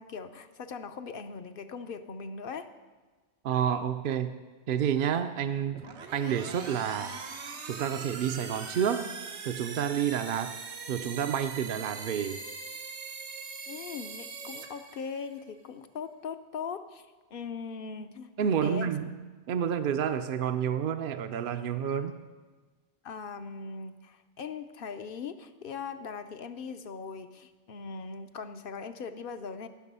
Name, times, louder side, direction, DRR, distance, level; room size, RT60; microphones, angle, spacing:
voice 1, 0.0-2.7 13.7-18.9 23.0-29.7, left 5 dB, 60° left, 9 dB, 0.8 m, -40 dB
voice 2, 3.4-4.4 4.7-5.8 6.1-7.1 7.6-9.1 9.5-10.6 10.9-12.4 18.4-19.1 19.5-22.1, right 8 dB, 60° right, 8 dB, 0.7 m, -29 dB
sound 1, 5.7-15.4, right 4 dB, 90° right, 1.3 m, -41 dB
17.5 x 6.7 x 5.5 m, 1.3 s
omnidirectional pair, 1.1 m